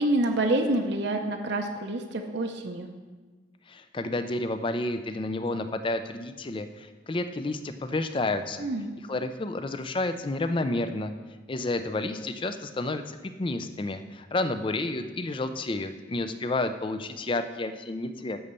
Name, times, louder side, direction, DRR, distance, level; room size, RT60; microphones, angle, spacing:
voice 1, 0.0-2.9 8.6-8.9, right 1 dB, 60° right, 3 dB, 0.7 m, -27 dB
voice 2, 3.7-8.7 9.1-11.1 11.5-18.4, left 2 dB, 25° left, 9 dB, 0.4 m, -30 dB
10.5 x 4.2 x 6.8 m, 1.3 s
head